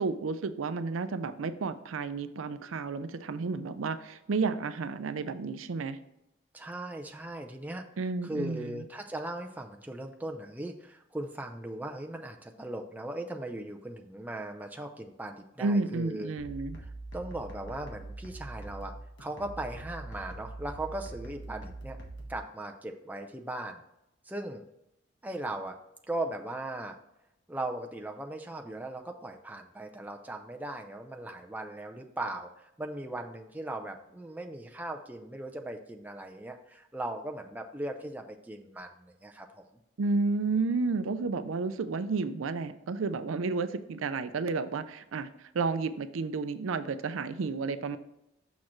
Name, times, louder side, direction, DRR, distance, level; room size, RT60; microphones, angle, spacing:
voice 1, 0.0-6.0 8.0-8.8 15.6-16.8 40.0-48.0, right 4 dB, 85° right, 12 dB, 0.5 m, -31 dB
voice 2, 6.5-16.3 16.8-18.9 19.2-22.0 22.3-23.8 24.2-24.6 25.2-25.8 26.1-27.0 27.5-39.6, right 1 dB, 10° right, 3 dB, 0.5 m, -38 dB
sound 1, 16.4-22.4, right 2 dB, 65° left, 1.5 m, -43 dB
6.4 x 6.0 x 3.1 m, 0.85 s
head